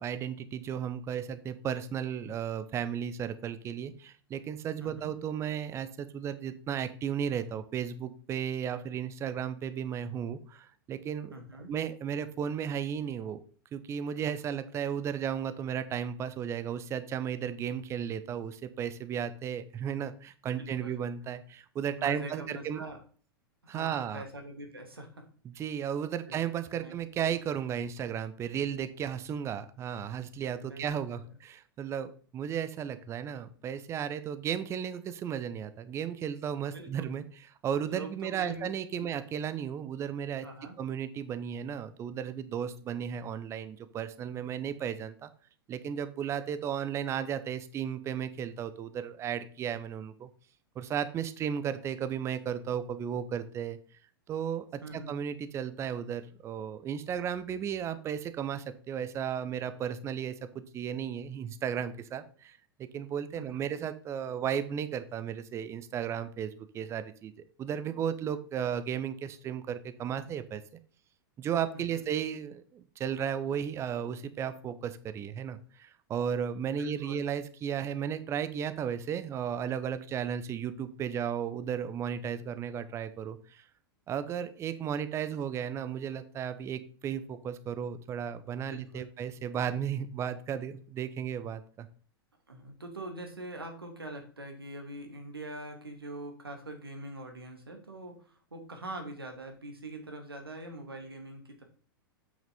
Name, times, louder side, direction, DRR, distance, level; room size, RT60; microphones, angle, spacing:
voice 1, 0.0-11.3 11.7-13.4 13.7-22.8 23.7-24.2 25.4-37.2 37.6-40.5 40.8-45.3 45.7-50.3 50.8-53.8 54.3-67.3 67.6-70.6 71.4-83.6 84.1-91.9, right 8 dB, 20° right, 12 dB, 0.7 m, -34 dB
voice 2, 4.8-5.1 11.3-11.7 20.6-21.0 21.9-23.0 23.6-25.3 26.3-26.4 26.7-27.0 30.7-31.4 36.7-37.2 37.9-38.7 39.0-39.1 40.4-40.7 54.8-55.2 63.4-63.7 71.7-72.1 76.8-77.3 88.7-89.1 92.5-101.6, right 1 dB, 80° right, 4 dB, 2.0 m, -43 dB
8.1 x 6.1 x 4.2 m, 0.42 s
figure-of-eight pair, 95°, 12 cm